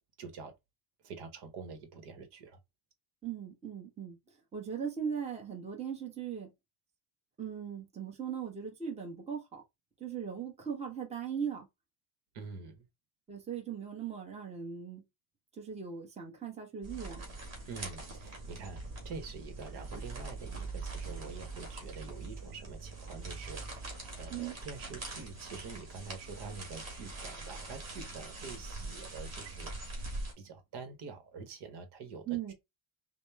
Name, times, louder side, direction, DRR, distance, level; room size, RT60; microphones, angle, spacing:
voice 1, 0.2-0.5 1.0-2.6 12.3-12.9 17.7-30.0 30.4-32.5, right 4 dB, 55° right, 1.1 m, -46 dB
voice 2, 3.2-4.2 4.5-6.5 7.4-9.6 10.0-11.7 13.3-15.0 15.5-17.2 24.3-24.5 32.3-32.5, right 7 dB, 15° right, 1.0 m, -39 dB
sound 1, 16.8-30.3, right 3 dB, 35° right, 2.1 m, -43 dB
5.1 x 2.1 x 3.4 m
cardioid pair, 150°, 48 cm